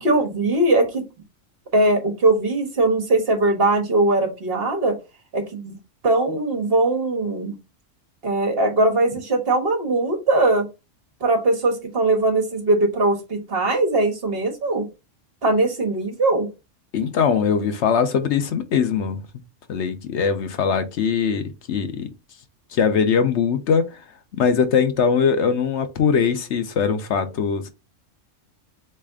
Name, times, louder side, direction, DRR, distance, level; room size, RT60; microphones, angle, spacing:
voice 1, 0.0-1.0 1.7-5.0 5.3-5.7 6.0-7.5 8.2-10.7 11.2-14.9 15.4-16.5, right 2 dB, 50° right, 1.4 m, -20 dB
voice 2, 16.9-19.2 19.7-22.1 22.7-24.0 24.3-27.7, left 6 dB, 65° left, 0.9 m, -21 dB
4.2 x 3.3 x 3.5 m
omnidirectional pair, 1.3 m